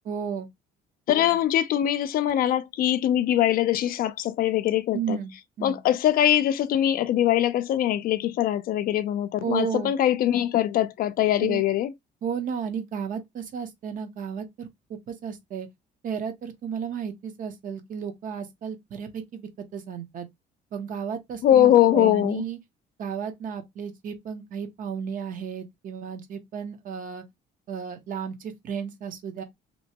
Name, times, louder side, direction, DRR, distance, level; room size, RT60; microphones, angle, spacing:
voice 1, 0.0-0.5 4.9-5.3 5.6-5.8 9.4-9.9 11.4-11.6 12.2-15.7 16.0-20.3 20.7-22.6 23.0-27.2 27.7-29.4, right 7 dB, 50° right, 0.7 m, -33 dB
voice 2, 1.1-5.2 5.6-11.9 21.4-22.4, left 12 dB, 60° left, 0.4 m, -22 dB
2.9 x 2.1 x 2.7 m
cardioid pair, 110°, 17 cm